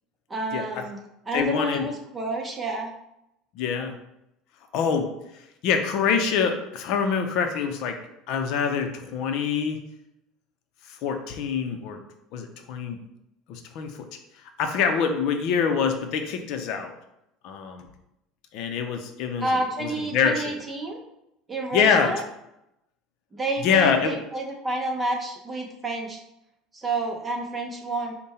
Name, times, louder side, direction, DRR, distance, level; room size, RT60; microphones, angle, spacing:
voice 1, 0.3-1.0 1.3-2.9 19.4-21.0 21.5-22.2 23.3-26.2 26.7-28.1, right 2 dB, 15° right, 1 dB, 0.7 m, -29 dB
voice 2, 1.3-1.9 3.6-3.9 4.7-5.1 5.6-8.0 8.3-9.8 11.0-12.0 12.3-13.0 13.5-14.0 14.6-16.9 17.4-17.9 18.5-19.5 19.8-20.5 21.7-22.1 23.6-24.2, left 6 dB, 60° left, 5 dB, 0.6 m, -25 dB
5.3 x 2.2 x 4.2 m, 0.83 s
cardioid pair, 140°, 0 cm